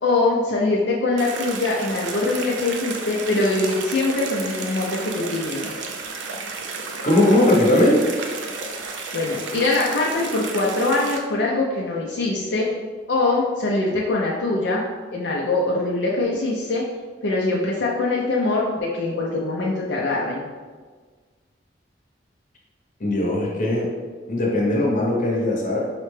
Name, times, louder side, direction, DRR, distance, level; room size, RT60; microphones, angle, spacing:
voice 1, 0.0-5.7 9.1-12.7 13.1-14.8 15.1-16.8 17.2-20.5, left 2 dB, 75° left, -3 dB, 0.5 m, -23 dB
sound 1, 1.2-11.2, right 4 dB, 80° right, 0.4 m, -32 dB
voice 2, 7.0-8.0 23.0-23.9 24.3-25.8, left 1 dB, 45° left, -3 dB, 0.8 m, -19 dB
4.8 x 2.2 x 3.2 m, 1.5 s
head